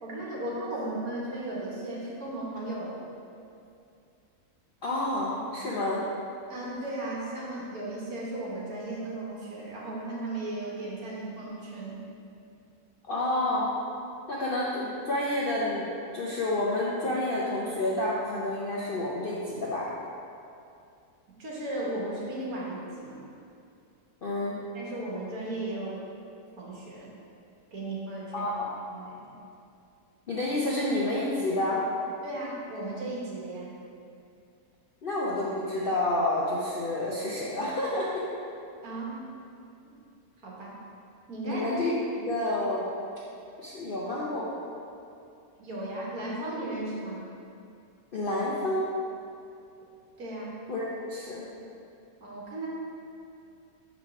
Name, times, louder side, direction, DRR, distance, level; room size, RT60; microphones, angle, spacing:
voice 1, 0.0-3.0 6.5-12.0 21.4-23.2 24.7-26.0 26.6-27.2 27.7-28.5 28.9-29.3 32.2-33.7 38.8-39.2 39.8-39.9 40.4-40.8 41.3-41.7 45.6-47.3 50.2-50.5 52.2-52.7, right 1 dB, 65° right, -5 dB, 1.6 m, -35 dB
voice 2, 4.8-6.1 13.1-13.7 14.3-19.9 24.2-24.6 28.3-28.7 30.3-31.9 35.0-38.2 41.5-42.9 43.6-44.5 48.1-49.0 50.7-51.5, left 1 dB, 55° left, -6 dB, 0.6 m, -29 dB
4.5 x 4.1 x 5.7 m, 2.5 s
omnidirectional pair, 1.6 m